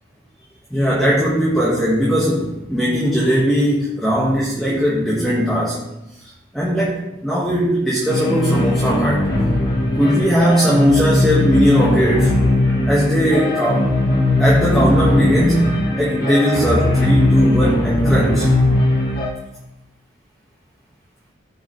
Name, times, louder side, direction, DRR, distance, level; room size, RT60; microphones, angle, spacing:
voice 1, 0.7-5.8 6.5-9.2 10.0-12.4 12.9-13.9 14.4-18.5, equal, ahead, -7 dB, 1.6 m, -18 dB
sound 1, 8.1-19.3, left 1 dB, 50° left, 1.6 m, -18 dB
15.0 x 5.1 x 3.2 m, 0.91 s
head